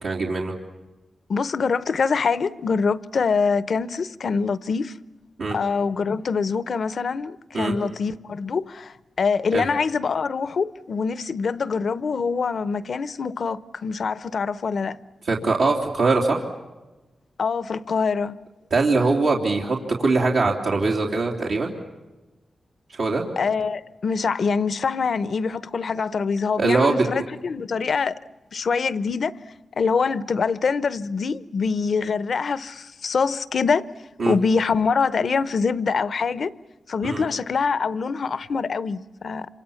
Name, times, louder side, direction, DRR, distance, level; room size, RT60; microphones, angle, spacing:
voice 1, 0.0-0.5 5.4-5.5 7.5-7.7 9.5-9.6 15.3-16.4 18.7-21.7 23.0-23.2 26.6-27.0 34.2-34.3 37.0-37.2, right 3 dB, 85° right, 3.1 m, -22 dB
voice 2, 1.3-4.9 5.5-15.0 17.4-18.4 23.4-28.1 28.5-29.3 29.8-33.9 34.3-36.5 36.9-39.5, left 5 dB, 65° left, 0.8 m, -24 dB
26.5 x 26.0 x 7.1 m
cardioid pair, 70°, 0 cm